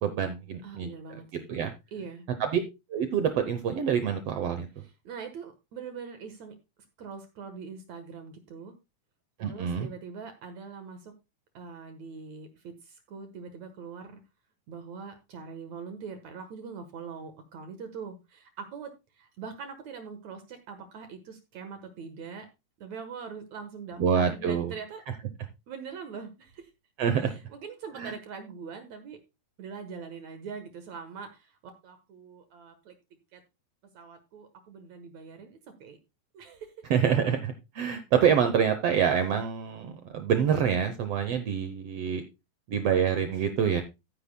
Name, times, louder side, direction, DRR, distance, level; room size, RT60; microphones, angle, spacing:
voice 1, 0.0-0.9 1.5-1.7 2.4-2.6 2.9-4.7 9.4-9.9 24.0-24.7 27.0-27.3 28.0-28.1 36.9-42.2 42.7-43.8, right 8 dB, 80° right, 8 dB, 1.3 m, -26 dB
voice 2, 0.6-1.5 1.9-2.3 4.8-6.5 7.0-8.7 9.4-11.1 11.5-14.2 14.7-22.5 22.8-25.0 25.7-26.7 27.1-29.2 29.6-32.9 33.3-33.4 33.9-36.0 36.3-36.7, right 5 dB, 65° right, 7 dB, 2.2 m, -42 dB
14.0 x 9.5 x 2.2 m, 0.25 s
omnidirectional pair, 4.0 m